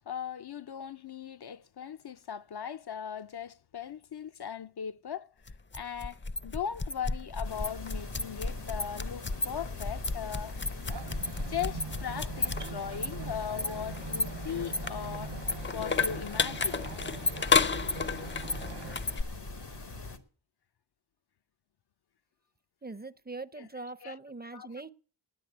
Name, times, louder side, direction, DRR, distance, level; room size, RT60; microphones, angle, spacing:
voice 1, 0.1-5.3 5.7-10.6 11.5-15.4 15.7-16.8 23.5-24.2 24.5-24.7, left 8 dB, 70° left, 0.5 m, -38 dB
sound 1, 5.5-19.2, left 4 dB, 30° left, 0.5 m, -33 dB
sound 2, 7.4-20.2, left 3 dB, 90° left, 1.3 m, -43 dB
sound 3, 10.9-19.0, right 9 dB, 80° right, 0.5 m, -44 dB
voice 2, 22.8-24.9, right 3 dB, 25° right, 0.5 m, -42 dB
9.9 x 9.4 x 7.7 m
wide cardioid pair, 45°, 40 cm